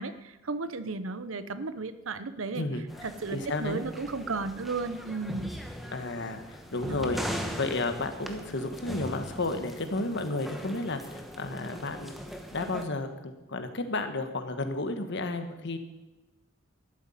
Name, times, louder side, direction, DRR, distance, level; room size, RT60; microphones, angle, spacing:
voice 1, 0.0-2.7 3.0-5.6 6.9-7.1, right 3 dB, 75° right, 13 dB, 0.8 m, -34 dB
voice 2, 2.6-3.8 5.9-7.2 7.5-12.1 12.5-15.8, left 2 dB, 60° left, 7 dB, 1.4 m, -32 dB
sound 1, 2.9-12.8, equal, ahead, 1.2 m, -40 dB
12.5 x 8.3 x 9.1 m, 1.1 s
head